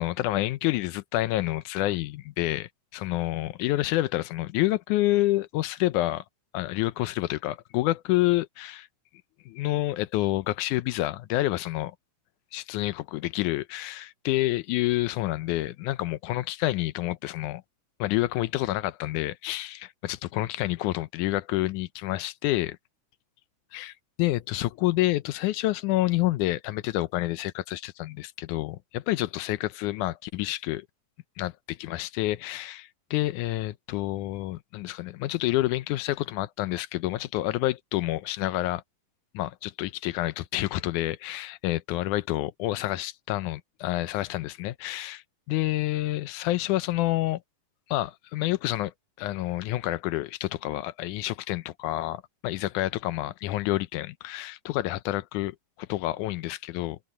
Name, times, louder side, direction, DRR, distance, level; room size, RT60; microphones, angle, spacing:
voice 1, 0.0-6.2 6.5-8.9 9.5-12.0 12.5-17.6 18.0-22.8 23.7-30.9 31.4-38.8 39.3-47.4 47.9-48.9 49.2-57.0, left 16 dB, 75° left, 2.0 m, -28 dB
open air
omnidirectional pair, 3.8 m